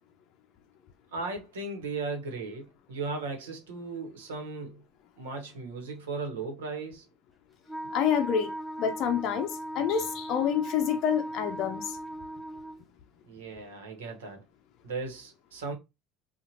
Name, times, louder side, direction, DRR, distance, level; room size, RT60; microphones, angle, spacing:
voice 1, 1.1-4.8 5.2-7.0 13.3-14.4 14.8-15.7, right 3 dB, 85° right, 1.1 m, -36 dB
Wind instrument woodwind instrument, 7.7-12.8, right 1 dB, ahead, 0.7 m, -38 dB
voice 2, 7.9-8.5 8.8-12.0, left 8 dB, 55° left, 0.5 m, -28 dB
2.7 x 2.4 x 2.9 m
hypercardioid pair, 75°, 0 cm